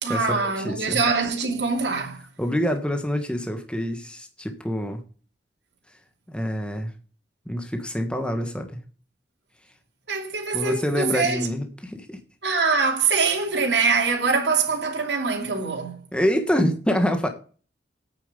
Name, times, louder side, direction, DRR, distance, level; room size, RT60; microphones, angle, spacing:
voice 1, 0.0-2.2 10.1-11.5 12.4-16.1, right 4 dB, 80° right, 2.9 m, -24 dB
voice 2, 0.6-1.0 2.4-5.0 6.3-6.9 7.5-8.8 10.5-12.2 16.1-17.3, equal, 5° left, 1.5 m, -26 dB
9.1 x 7.1 x 8.3 m
head